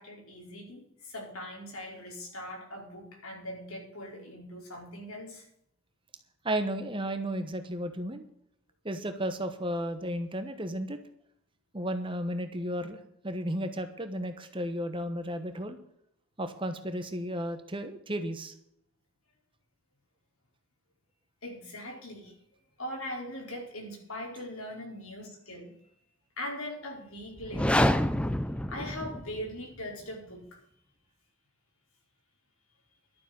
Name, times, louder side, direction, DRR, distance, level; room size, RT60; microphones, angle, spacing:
voice 1, 0.0-5.4 21.4-22.3 22.8-25.7 26.4-28.1 28.7-30.4, left 1 dB, 75° left, 0 dB, 4.7 m, -40 dB
voice 2, 6.4-8.3 8.8-11.0 11.7-15.8 16.4-18.5, right 1 dB, 20° right, 8 dB, 1.2 m, -33 dB
sound 1, 27.4-29.5, left 1 dB, 5° left, 0.5 m, -27 dB
12.0 x 7.2 x 9.4 m, 0.71 s
head